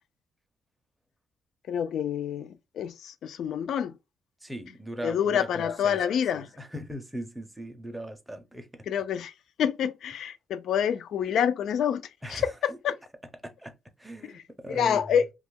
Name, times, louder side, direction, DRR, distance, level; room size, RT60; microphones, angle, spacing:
voice 1, 1.7-3.9 5.0-6.5 8.9-9.3 9.6-12.0 12.3-12.9 14.3-14.4 14.7-15.2, left 8 dB, 65° left, 0.3 m, -27 dB
voice 2, 4.4-6.0 6.3-8.9 12.2-12.8 13.4-15.0, right 1 dB, 5° right, 0.5 m, -39 dB
2.9 x 2.3 x 3.3 m
cardioid pair, 145°, 0 cm